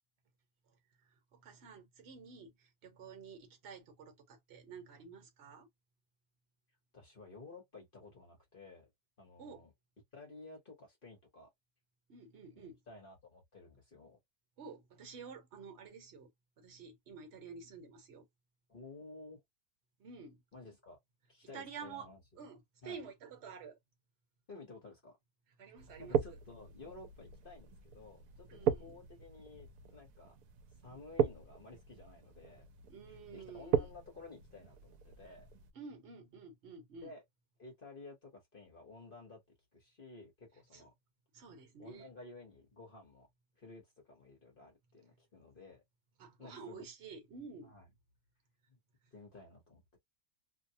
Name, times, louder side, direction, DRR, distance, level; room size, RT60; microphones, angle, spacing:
voice 1, 1.0-5.7 9.4-9.6 12.1-12.8 14.6-16.3 16.6-18.3 20.0-20.4 21.5-22.1 22.4-23.8 25.6-26.2 28.5-29.0 30.8-31.0 32.9-33.9 35.7-37.1 40.7-40.9 41.3-42.1 46.2-47.7, right 5 dB, 50° right, 1.1 m, -50 dB
voice 2, 6.9-8.9 9.2-9.7 10.1-11.5 12.6-14.2 18.7-19.4 20.5-21.0 21.3-22.2 22.8-23.0 24.5-25.2 26.0-30.4 30.8-32.7 33.1-35.5 37.0-37.2 37.6-39.4 39.7-40.9 41.8-43.3 43.6-45.8 46.4-46.8 47.6-47.8 48.7-48.8 49.1-50.0, left 3 dB, 40° left, 1.0 m, -54 dB
sound 1, 25.8-35.7, right 9 dB, 75° right, 1.1 m, -38 dB
2.8 x 2.2 x 2.6 m
omnidirectional pair, 1.6 m